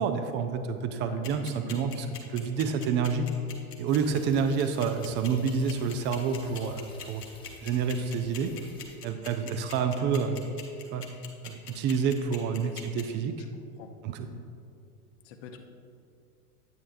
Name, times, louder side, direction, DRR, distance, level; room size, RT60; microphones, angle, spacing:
voice 1, 0.0-3.3 3.8-7.2 7.6-8.5 9.0-10.4 10.9-11.1 11.4-13.3 14.0-14.4, right 6 dB, 25° right, 8 dB, 0.5 m, -28 dB
sound 1, 1.2-13.0, left 8 dB, 85° left, 1.1 m, -42 dB
sound 2, 3.9-9.0, left 3 dB, 10° left, 0.7 m, -53 dB
voice 2, 15.2-15.6, left 8 dB, 45° left, 4 dB, 0.8 m, -46 dB
9.4 x 8.3 x 2.6 m, 2.5 s
hypercardioid pair, 100°, 46 cm